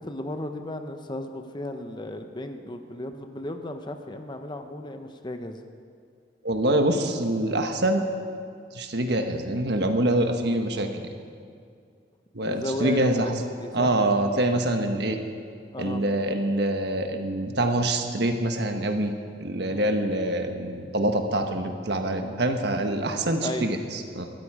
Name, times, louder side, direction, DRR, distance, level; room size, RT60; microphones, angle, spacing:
voice 1, 0.0-5.6 12.4-13.9 15.7-16.0 19.7-19.9 23.4-23.8, left 1 dB, 25° left, 7 dB, 0.9 m, -34 dB
voice 2, 6.4-8.1 8.7-11.0 12.3-13.3 13.7-15.2 15.8-19.1 19.4-24.3, right 1 dB, 65° right, 5 dB, 1.4 m, -25 dB
21.0 x 13.5 x 4.9 m, 2.2 s
head